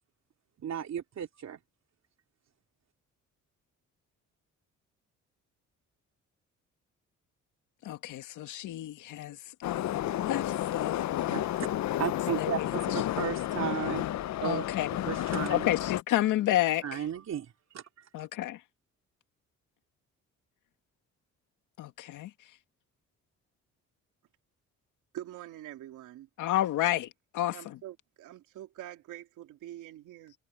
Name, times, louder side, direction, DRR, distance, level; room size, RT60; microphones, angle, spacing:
voice 1, 0.6-1.6 11.3-11.7 12.0-14.1 14.4-14.7 15.0-15.7 16.8-18.1, right 8 dB, 60° right, 3.6 m, -35 dB
voice 2, 7.8-11.1 12.4-12.7 14.4-14.9 15.5-17.0 18.1-18.6 21.8-22.3 26.4-27.1 27.3-27.8, left 14 dB, 85° left, 2.1 m, -30 dB
Subway metro underground, 9.6-16.0, left 13 dB, 65° left, 0.7 m, -31 dB
voice 3, 25.1-26.3 27.5-30.3, right 13 dB, 85° right, 3.1 m, -45 dB
cardioid pair, 90°, 30 cm